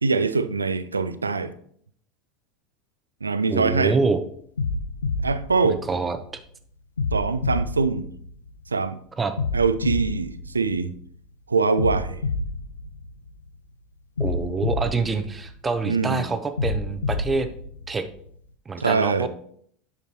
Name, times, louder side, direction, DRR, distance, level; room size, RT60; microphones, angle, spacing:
voice 1, 0.0-1.5 3.2-4.0 5.2-5.8 7.1-8.1 8.7-9.0 9.5-10.9 11.5-12.2 15.9-16.2 18.8-19.3, right 4 dB, 80° right, 13 dB, 0.4 m, -23 dB
voice 2, 3.5-4.2 5.9-6.2 9.2-9.3 14.2-17.5 17.9-18.0 18.7-19.3, right 4 dB, 20° right, 9 dB, 0.8 m, -26 dB
sound 1, 3.7-4.0 4.6-6.4 7.0-8.8 9.4-11.2 11.8-13.6 14.2-16.0 16.6-18.4, left 3 dB, 75° left, 0.7 m, -29 dB
9.1 x 6.7 x 2.9 m, 0.62 s
figure-of-eight pair, 80°, 0 cm